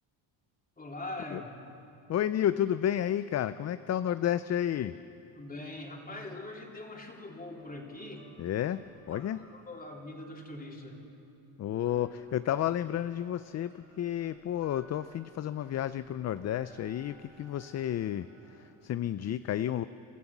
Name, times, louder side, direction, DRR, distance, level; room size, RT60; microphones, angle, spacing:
voice 1, 0.8-1.5 5.3-8.3 9.1-11.0, left 2 dB, 20° left, 0 dB, 3.3 m, -42 dB
voice 2, 2.1-5.0 8.4-9.4 11.6-19.8, left 11 dB, 40° left, 14 dB, 0.5 m, -31 dB
sound 1, 7.6-11.5 11.8-18.7, right 3 dB, 35° right, 2.9 m, -60 dB
29.5 x 13.5 x 7.3 m, 2.8 s
cardioid pair, 105°, 43 cm